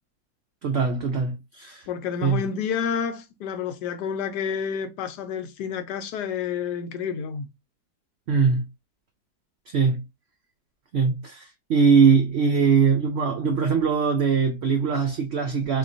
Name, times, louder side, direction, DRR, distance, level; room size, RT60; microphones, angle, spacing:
voice 1, 0.6-1.9 2.2-2.4 8.3-8.6 9.7-10.0 10.9-15.8, right 5 dB, 85° right, 0.5 m, -21 dB
voice 2, 1.9-7.5, left 7 dB, 90° left, 1.3 m, -29 dB
3.7 x 2.9 x 2.5 m
omnidirectional pair, 1.7 m